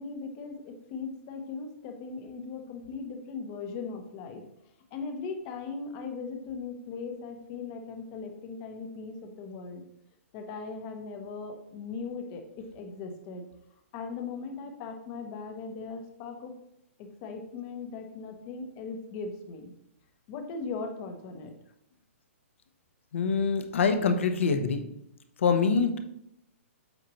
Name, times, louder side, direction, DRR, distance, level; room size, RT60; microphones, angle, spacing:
voice 1, 0.0-4.4 4.9-9.8 10.3-13.5 13.9-16.5 17.0-19.7 20.3-21.5, left 4 dB, 20° left, 5 dB, 0.7 m, -39 dB
voice 2, 23.1-24.8 25.4-26.0, left 5 dB, 60° left, 8 dB, 0.9 m, -25 dB
7.9 x 5.7 x 3.0 m, 0.77 s
hypercardioid pair, 175°, 8 cm